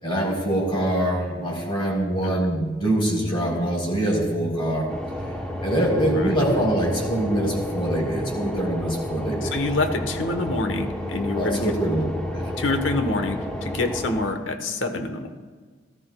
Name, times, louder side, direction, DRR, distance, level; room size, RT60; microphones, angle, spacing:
voice 1, 0.0-4.9 5.6-9.6 11.4-12.0 12.3-12.5, right 1 dB, 25° left, -3 dB, 3.7 m, -24 dB
sound 1, 4.9-14.3, left 1 dB, 5° left, 0.9 m, -31 dB
voice 2, 9.4-11.7 12.6-15.3, left 2 dB, 85° left, 7 dB, 1.1 m, -26 dB
17.5 x 13.5 x 2.3 m, 1.4 s
head